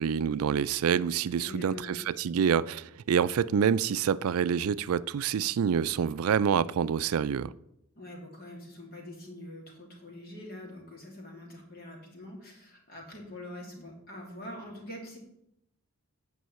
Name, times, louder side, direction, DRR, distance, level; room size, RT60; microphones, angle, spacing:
voice 1, 0.0-7.5, right 7 dB, 80° right, 0.4 m, -27 dB
voice 2, 1.4-2.0 8.0-15.2, left 1 dB, 45° left, 2.9 m, -44 dB
9.3 x 5.5 x 8.1 m
head